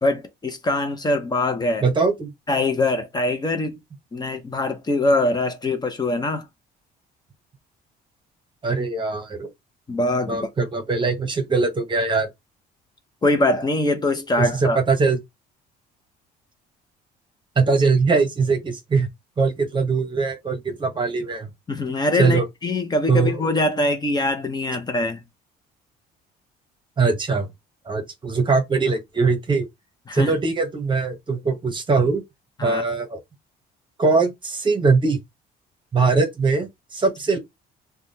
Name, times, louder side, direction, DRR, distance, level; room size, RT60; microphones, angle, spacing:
voice 1, 0.0-1.8 2.5-3.8 4.1-6.4 9.9-10.5 13.2-14.8 21.7-25.2 30.1-30.4 32.6-32.8, left 2 dB, 25° left, 0.7 m, -23 dB
voice 2, 1.8-2.3 8.6-9.5 10.3-12.3 14.4-15.2 17.6-19.1 19.4-21.5 22.2-22.4 23.1-23.4 27.0-27.5 27.9-29.6 30.1-32.2 32.6-33.2 34.0-35.2 35.9-37.4, right 4 dB, 30° right, 0.9 m, -21 dB
3.4 x 2.3 x 2.7 m
cardioid pair, 110°, 17 cm